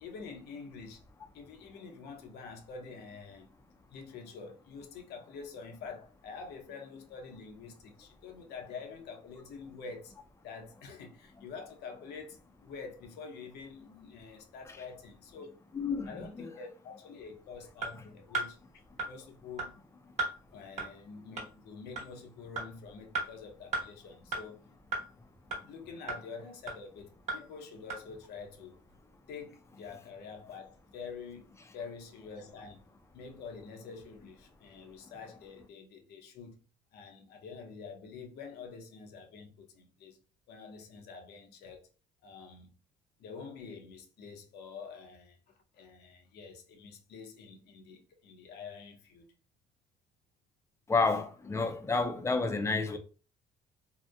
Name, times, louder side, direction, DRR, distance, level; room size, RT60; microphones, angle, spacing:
voice 1, 0.0-1.0 1.3-3.5 3.9-10.1 10.4-15.6 16.1-19.8 20.5-24.6 25.6-28.8 29.3-32.8 33.1-36.6 36.9-40.2 40.5-41.9 42.2-42.7 43.2-45.4 45.7-49.3, left 5 dB, 75° left, 0.7 m, -47 dB
voice 2, 15.7-16.6 50.9-53.0, left 3 dB, 15° left, 0.4 m, -30 dB
sound 1, 17.8-17.9 18.3-18.5 19.0-19.1 19.6-19.7 20.2-20.3 20.8-20.9 21.4-21.5 22.0-22.1 22.6-22.7 23.1-23.3 23.7-23.8 24.3-24.4 24.9-25.0 25.5-25.6 26.1-26.2 26.7-26.8 27.3-27.4 27.9-28.0, right 3 dB, 40° right, 1.1 m, -33 dB
2.7 x 2.0 x 2.3 m
cardioid pair, 110°, 17 cm